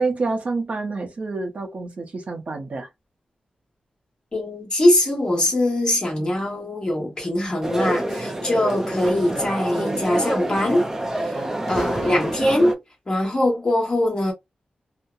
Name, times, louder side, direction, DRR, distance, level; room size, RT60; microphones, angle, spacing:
voice 1, 0.0-2.9, right 3 dB, 55° right, 0.7 m, -27 dB
voice 2, 4.3-10.9 11.1-11.4 11.7-12.8 13.1-14.3, left 1 dB, 30° left, 1.2 m, -22 dB
sound 1, 7.6-12.7, right 1 dB, 15° right, 0.4 m, -27 dB
2.7 x 2.1 x 2.4 m
wide cardioid pair, 145°, 3 cm